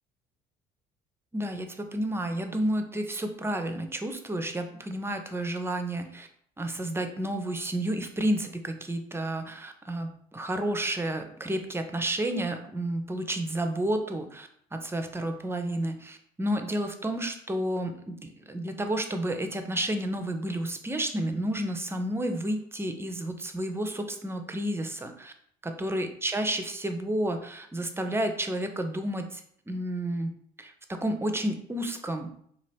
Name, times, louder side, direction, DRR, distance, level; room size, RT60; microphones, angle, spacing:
voice 1, 1.3-6.3 6.6-25.3 25.6-29.4 29.7-32.3, right 1 dB, 10° right, 6 dB, 0.5 m, -31 dB
2.9 x 2.4 x 3.2 m, 0.65 s
hypercardioid pair, 60°, 20 cm